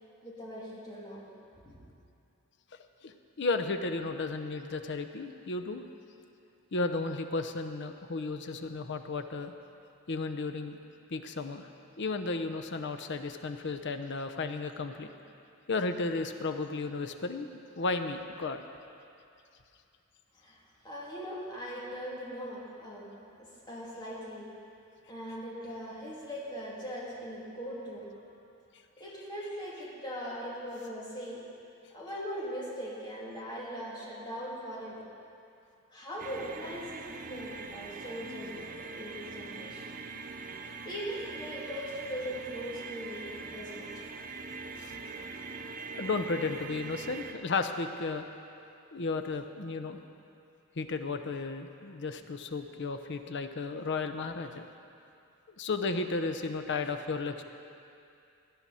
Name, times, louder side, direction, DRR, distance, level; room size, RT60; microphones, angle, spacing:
voice 1, 0.2-1.3 1.6-1.8 20.4-23.1 23.4-24.5 25.1-28.3 29.0-31.4 31.9-35.0 35.9-39.8 40.8-43.9 45.0-45.2, equal, 20° left, -6 dB, 2.7 m, -40 dB
voice 2, 3.0-5.8 6.7-9.5 10.1-10.8 11.1-11.7 12.0-15.1 15.7-18.6 44.7-44.9 45.9-48.2 48.9-50.0 50.8-54.6 55.6-57.4, left 3 dB, 55° left, 8 dB, 0.7 m, -34 dB
sound 1, 36.2-47.3, right 4 dB, 40° right, 0.6 m, -42 dB
17.0 x 10.5 x 4.2 m, 2.6 s
head